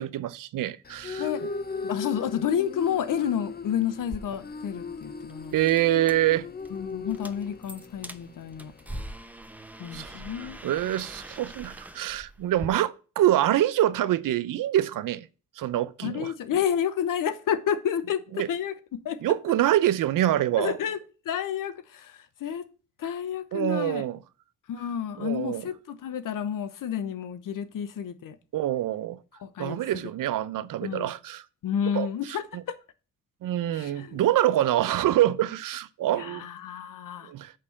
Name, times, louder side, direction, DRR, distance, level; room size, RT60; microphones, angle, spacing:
voice 1, 0.0-1.3 5.5-6.5 9.9-10.2 10.6-15.3 15.6-16.3 18.3-18.5 19.2-20.8 23.5-24.2 25.2-25.6 28.5-29.2 29.6-31.4 31.9-32.6 33.4-36.5 37.2-37.5, right 13 dB, 90° right, 0.6 m, -25 dB
sound 1, 0.8-9.1, left 4 dB, 30° left, 0.7 m, -38 dB
voice 2, 1.8-5.5 6.7-8.7 9.8-10.6 16.0-18.7 19.0-19.2 20.6-21.0 21.2-22.7 23.0-24.0 24.7-28.4 29.4-29.8 30.8-31.1 31.6-32.8 33.7-34.2 36.1-37.3, left 9 dB, 85° left, 0.9 m, -30 dB
sound 2, 4.0-12.7, right 1 dB, 5° right, 0.8 m, -43 dB
6.5 x 5.4 x 7.1 m
cardioid pair, 60°, 32 cm